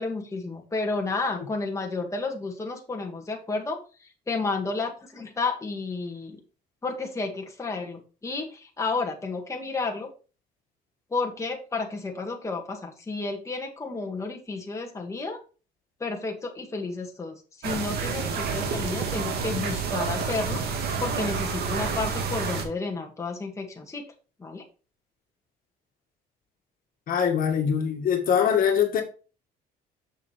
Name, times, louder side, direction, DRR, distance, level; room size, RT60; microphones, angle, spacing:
voice 1, 0.0-3.8 4.3-6.4 6.8-10.1 11.1-15.4 16.0-20.6 21.0-24.0 24.4-24.6, left 3 dB, 15° left, 2.0 m, -31 dB
sound 1, 17.6-22.6, right 5 dB, 70° right, 2.1 m, -29 dB
voice 2, 27.1-29.0, left 8 dB, 55° left, 1.9 m, -23 dB
7.0 x 6.9 x 3.3 m
cardioid pair, 110°, 17 cm